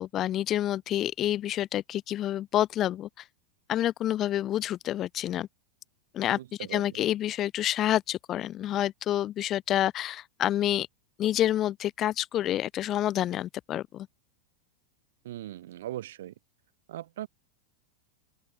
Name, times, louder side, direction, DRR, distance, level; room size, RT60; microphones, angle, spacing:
voice 1, 0.0-3.2 3.7-5.5 6.1-6.4 6.7-10.9 11.2-14.1, left 12 dB, 30° left, 0.4 m, -28 dB
voice 2, 6.3-6.8 15.2-16.3 16.9-17.3, right 13 dB, 55° right, 1.8 m, -39 dB
open air
figure-of-eight pair, 90°, 0 cm